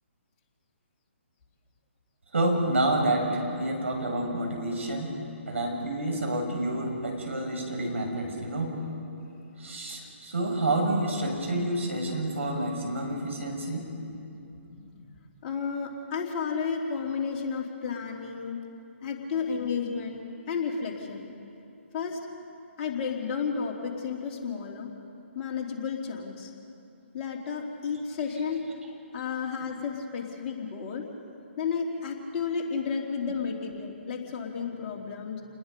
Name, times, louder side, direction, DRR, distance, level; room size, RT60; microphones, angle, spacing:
voice 1, 2.3-5.1 5.5-8.8 9.6-13.8, right 1 dB, 75° right, 0 dB, 6.7 m, -28 dB
voice 2, 14.1-15.1 15.4-18.6 19.0-21.3 21.9-22.2 22.8-24.9 25.3-26.5 27.1-28.6 29.1-31.1 31.6-35.4, left 6 dB, 35° left, -1 dB, 3.1 m, -32 dB
29.5 x 20.5 x 5.3 m, 2.6 s
figure-of-eight pair, 135°, 7 cm